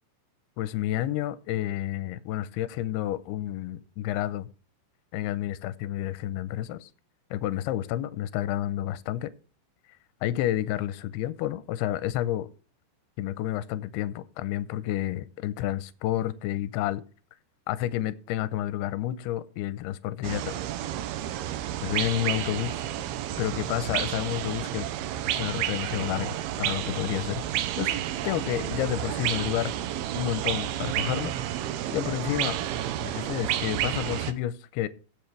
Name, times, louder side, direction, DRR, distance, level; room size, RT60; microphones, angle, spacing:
voice 1, 0.6-4.5 5.1-6.9 7.3-9.3 10.2-12.5 13.2-17.0 17.7-20.4 21.8-22.8 23.4-24.9 25.3-27.4 27.8-27.9 28.2-29.7 30.1-31.3 31.9-32.6 33.0-34.9, left 13 dB, 80° left, 2.5 m, -30 dB
sound 1, 20.2-34.3, right 12 dB, 75° right, 2.5 m, -31 dB
16.5 x 6.6 x 3.3 m
omnidirectional pair, 4.9 m